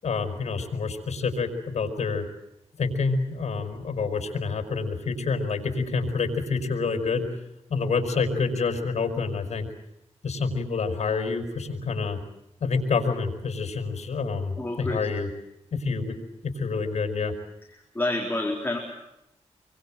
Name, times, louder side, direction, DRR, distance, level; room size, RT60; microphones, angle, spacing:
voice 1, 0.0-2.3 2.8-7.3 7.7-9.7 10.2-12.2 12.6-15.3 15.7-16.2 16.4-17.3, left 4 dB, 75° left, 6 dB, 5.8 m, -27 dB
voice 2, 14.6-15.1 17.7-18.8, left 2 dB, 15° left, -1 dB, 4.2 m, -28 dB
26.5 x 24.5 x 7.7 m, 0.84 s
wide cardioid pair, 135°, 11 cm